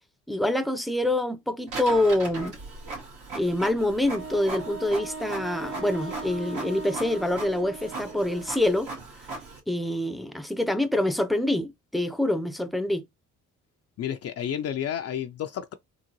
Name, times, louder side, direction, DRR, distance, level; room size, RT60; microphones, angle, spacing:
voice 1, 0.3-2.6 3.3-8.9 9.7-13.0, left 1 dB, ahead, 0.5 m, -26 dB
Printer, 1.7-9.6, right 3 dB, 85° right, 2.0 m, -39 dB
Wind instrument woodwind instrument, 4.1-8.7, right 3 dB, 45° right, 0.9 m, -39 dB
voice 2, 14.0-15.7, left 9 dB, 55° left, 0.5 m, -31 dB
3.8 x 2.0 x 3.0 m
cardioid pair, 90°, 30 cm